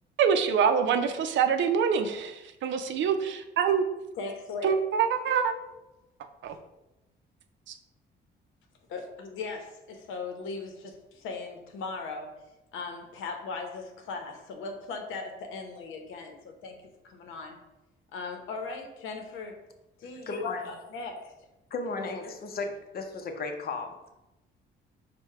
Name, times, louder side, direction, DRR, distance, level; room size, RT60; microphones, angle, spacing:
voice 1, 0.2-3.8 4.6-5.5 6.4-6.6 7.7-7.8, right 7 dB, 70° right, 7 dB, 0.5 m, -25 dB
voice 2, 4.2-4.8 8.9-12.3 12.7-16.8 17.0-17.6 18.1-19.6 20.0-21.3 22.0-22.1, left 4 dB, 90° left, 3 dB, 0.8 m, -38 dB
voice 3, 20.2-20.6 21.7-24.1, left 3 dB, 50° left, 5 dB, 0.7 m, -35 dB
4.5 x 2.2 x 4.5 m, 0.97 s
cardioid pair, 90°, 20 cm